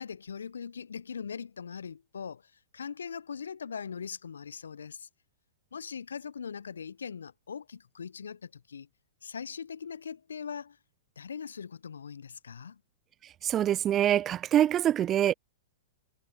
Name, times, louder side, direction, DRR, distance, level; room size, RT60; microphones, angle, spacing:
voice 1, 0.0-5.1 5.7-8.9 9.2-10.8 11.2-12.8, left 6 dB, 70° left, 1.0 m, -41 dB
voice 2, 13.4-15.3, right 11 dB, 25° right, 0.4 m, -25 dB
figure-of-eight pair, 105°, 0 cm